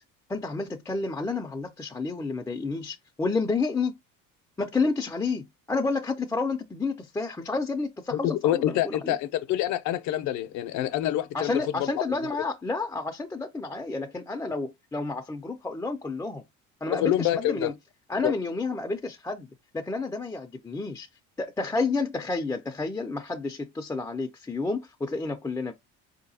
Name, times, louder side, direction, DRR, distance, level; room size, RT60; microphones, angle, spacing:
voice 1, 0.3-3.9 4.6-9.2 11.3-16.4 16.8-17.7 18.1-19.5 19.7-21.1 21.4-25.7, left 3 dB, 10° left, 0.3 m, -30 dB
voice 2, 8.1-12.1 16.9-17.7 18.2-18.3, left 12 dB, 65° left, 0.6 m, -27 dB
4.5 x 2.8 x 2.7 m
cardioid pair, 135°, 31 cm